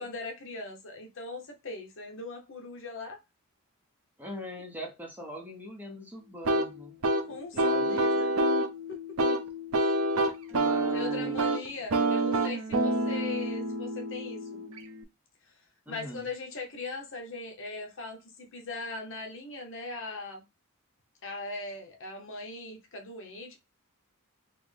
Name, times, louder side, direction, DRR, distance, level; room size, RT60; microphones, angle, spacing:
voice 1, 0.0-3.2 7.3-8.3 8.9-9.0 9.8-9.9 10.9-14.6 15.5-15.6 15.9-20.4 21.2-23.6, left 3 dB, 60° left, 0.9 m, -40 dB
voice 2, 4.2-7.0 7.5-8.0 10.5-11.7 15.9-16.3, left 1 dB, 10° right, 0.7 m, -42 dB
sound 1, 6.4-15.0, right 1 dB, 70° right, 0.6 m, -28 dB
4.1 x 2.1 x 3.3 m
head